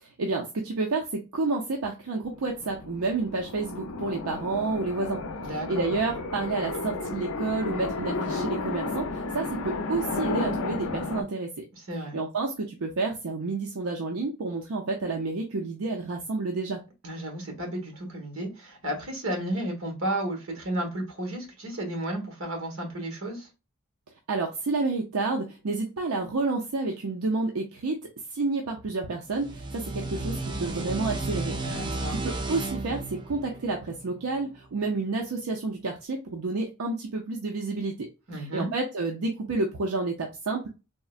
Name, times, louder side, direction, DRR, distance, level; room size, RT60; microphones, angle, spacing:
voice 1, 0.0-5.2 5.5-11.6 12.1-16.8 24.3-38.1 38.3-40.7, right 3 dB, 85° right, 0.5 m, -30 dB
sound 1, 2.3-11.2, left 3 dB, 80° left, 0.5 m, -33 dB
voice 2, 5.4-5.9 11.7-12.2 17.0-23.5 31.6-32.2 38.3-38.7, right 1 dB, 60° right, 1.3 m, -33 dB
sound 2, 29.3-34.6, right 2 dB, 20° right, 0.4 m, -33 dB
3.7 x 2.1 x 2.4 m
head